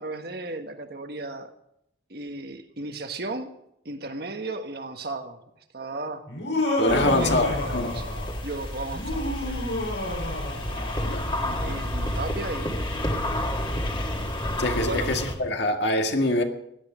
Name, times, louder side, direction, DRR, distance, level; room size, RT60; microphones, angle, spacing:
voice 1, 0.0-1.5 2.1-3.5 3.8-5.4 5.7-6.2 6.9-8.1 8.4-10.1 11.4-12.9 14.8-15.1, right 2 dB, 55° right, 1.5 m, -35 dB
Laughter, 6.3-8.4 8.9-11.2, left 2 dB, 85° left, 6.1 m, -29 dB
voice 2, 6.8-7.9 11.0-11.3 14.6-16.4, left 1 dB, 65° left, 1.9 m, -24 dB
sound 1, 6.9-15.3, left 1 dB, 25° left, 2.0 m, -30 dB
17.0 x 11.5 x 5.1 m
head